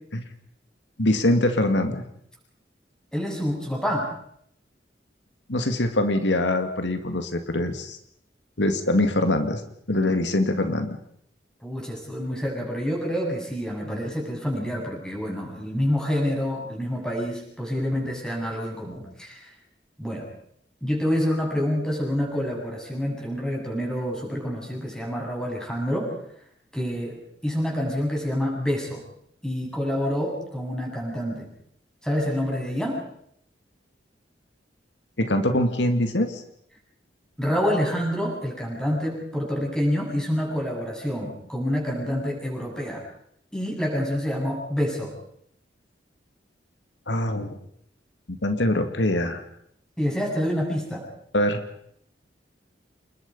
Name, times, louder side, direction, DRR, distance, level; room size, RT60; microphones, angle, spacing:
voice 1, 1.0-2.0 5.5-8.0 8.6-11.0 35.2-36.4 47.1-47.6 48.3-49.4 51.3-51.6, left 1 dB, 85° left, 7 dB, 2.2 m, -23 dB
voice 2, 3.1-4.1 11.6-19.5 20.0-20.3 20.8-26.1 26.7-29.0 29.4-31.5 32.0-33.0 37.4-43.0 43.5-45.1 50.0-51.0, equal, 5° left, -2 dB, 7.8 m, -27 dB
28.0 x 21.5 x 5.5 m, 0.70 s
head